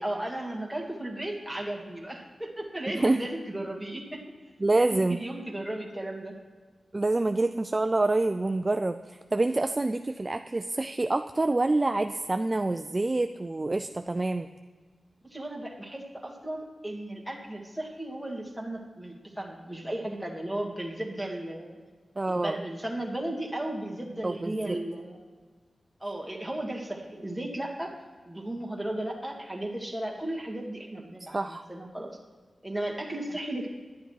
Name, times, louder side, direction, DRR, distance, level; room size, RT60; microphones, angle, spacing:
voice 1, 0.0-4.2 4.8-6.4 15.2-21.8 22.3-25.2 26.0-27.9 28.3-32.2 32.6-33.7, right 1 dB, ahead, -1 dB, 1.8 m, -35 dB
voice 2, 4.6-5.2 6.9-14.5 22.2-22.6 24.2-24.8 31.3-31.6, right 2 dB, 25° right, 8 dB, 0.3 m, -27 dB
10.5 x 10.5 x 4.7 m, 1.4 s
wide cardioid pair, 140°, 0 cm